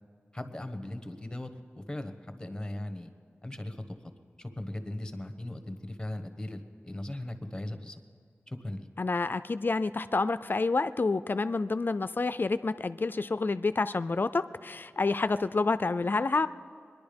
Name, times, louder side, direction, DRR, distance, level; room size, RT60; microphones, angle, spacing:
voice 1, 0.3-3.1 3.4-4.0 4.4-8.0 8.5-8.8, left 1 dB, 15° left, 8 dB, 1.2 m, -38 dB
voice 2, 9.0-16.5, left 3 dB, 45° left, 13 dB, 0.4 m, -28 dB
23.0 x 11.0 x 5.2 m, 2.1 s
wide cardioid pair, 65°, 5 cm